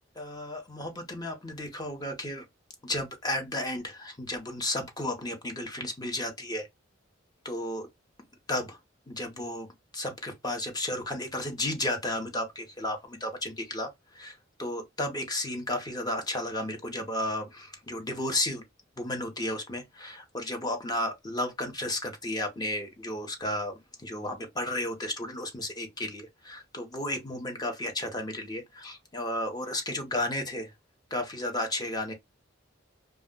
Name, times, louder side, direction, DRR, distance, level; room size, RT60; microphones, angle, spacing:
voice 1, 0.2-2.4 2.8-6.7 7.4-7.9 8.5-8.8 9.1-9.7 9.9-13.9 14.1-14.3 14.6-18.6 19.0-30.7 31.1-32.1, left 1 dB, 20° left, 0.8 m, -33 dB
2.3 x 2.1 x 3.6 m
head